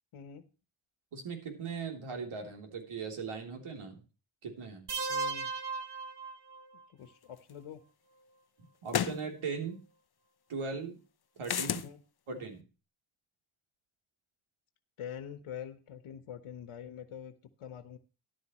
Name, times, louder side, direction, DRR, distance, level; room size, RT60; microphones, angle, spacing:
voice 1, 0.1-0.4 5.1-5.5 6.9-7.8 11.6-12.0 15.0-17.3 17.6-18.0, left 8 dB, 80° left, 9 dB, 1.3 m, -45 dB
voice 2, 1.1-4.0 4.4-4.9 8.8-9.8 10.5-11.0 11.4-11.8 12.3-12.7, right 5 dB, 75° right, 3 dB, 3.5 m, -39 dB
sound 1, 4.9-6.8, right 4 dB, 50° right, 1.2 m, -36 dB
sound 2, 7.5-7.6 8.9-9.2 11.4-11.9, left 9 dB, 50° left, 0.8 m, -31 dB
13.5 x 11.0 x 3.1 m, 0.34 s
wide cardioid pair, 110°, 50 cm